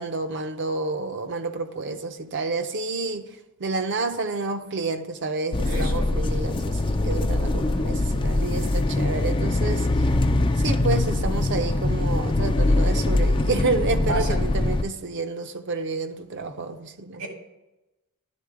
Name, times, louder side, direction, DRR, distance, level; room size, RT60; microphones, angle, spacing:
voice 1, 0.0-3.3 3.6-10.1 10.6-17.2, right 3 dB, 55° right, 0.6 m, -29 dB
sound 1, 5.5-14.8, left 2 dB, 20° left, 0.3 m, -23 dB
voice 2, 5.6-6.1 14.0-14.4 17.2-17.3, right 1 dB, 85° right, 1.9 m, -30 dB
11.0 x 3.8 x 4.9 m
head